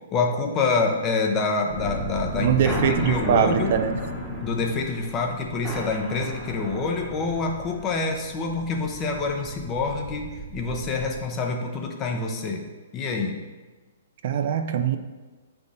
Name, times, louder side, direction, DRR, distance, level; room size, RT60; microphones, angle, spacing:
voice 1, 0.1-3.7 4.4-12.6 12.9-13.4, left 4 dB, 25° left, 2 dB, 0.8 m, -27 dB
sound 1, 1.7-11.2, equal, 5° right, 1.2 m, -34 dB
voice 2, 2.4-4.0 14.2-15.0, right 8 dB, 55° right, 8 dB, 0.4 m, -22 dB
8.2 x 3.5 x 4.0 m, 1.3 s
hypercardioid pair, 145°, 0 cm